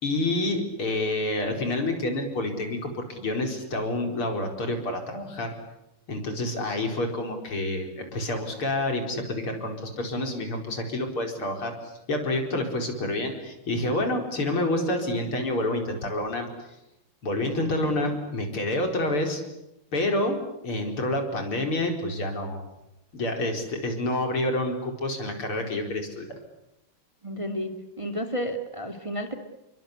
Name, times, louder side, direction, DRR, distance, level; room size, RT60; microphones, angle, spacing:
voice 1, 0.0-5.6 6.1-16.5 17.2-19.4 19.9-20.4 20.6-22.6 23.1-26.4, left 1 dB, 75° left, 4 dB, 5.5 m, -28 dB
voice 2, 27.2-29.3, equal, 15° right, 5 dB, 2.3 m, -32 dB
30.0 x 23.5 x 8.3 m, 0.89 s
omnidirectional pair, 2.4 m